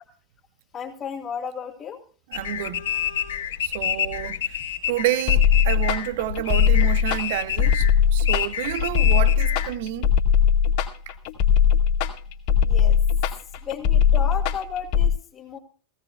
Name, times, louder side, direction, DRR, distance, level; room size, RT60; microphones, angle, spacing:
voice 1, 0.7-2.0 12.6-13.0 13.6-15.6, left 7 dB, 25° left, 2.1 m, -34 dB
sound 1, 2.3-9.7, left 10 dB, 65° left, 2.6 m, -29 dB
voice 2, 2.3-2.8 3.6-4.6 4.9-10.1, right 13 dB, 50° right, 0.9 m, -29 dB
sound 2, 5.3-15.1, left 8 dB, 45° left, 2.2 m, -19 dB
18.0 x 16.5 x 2.3 m
figure-of-eight pair, 90°, 0 cm